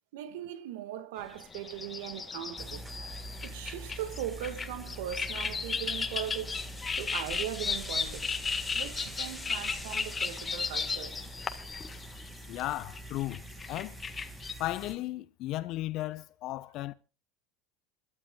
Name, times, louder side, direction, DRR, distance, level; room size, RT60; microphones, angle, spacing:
voice 1, 0.1-2.9 3.4-6.7 7.0-8.4 8.7-11.3, right 11 dB, 75° right, 1.8 m, -39 dB
sound 1, 1.2-14.5, left 5 dB, 25° left, 1.6 m, -35 dB
sound 2, 2.6-14.9, right 1 dB, 15° right, 6.2 m, -45 dB
sound 3, 5.9-11.4, left 2 dB, 5° left, 4.0 m, -46 dB
voice 2, 12.5-14.0 14.6-16.9, left 16 dB, 55° left, 1.0 m, -35 dB
27.0 x 12.5 x 2.4 m
supercardioid pair, 95°, 0 cm